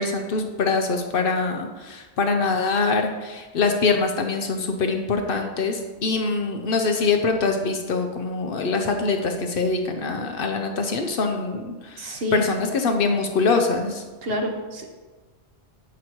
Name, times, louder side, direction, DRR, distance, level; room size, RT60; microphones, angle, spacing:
voice 1, 0.0-14.0, left 4 dB, 60° left, 5 dB, 0.7 m, -24 dB
voice 2, 12.0-12.4 14.2-14.9, equal, 60° right, 3 dB, 1.0 m, -28 dB
7.8 x 6.2 x 2.9 m, 1.3 s
omnidirectional pair, 1.2 m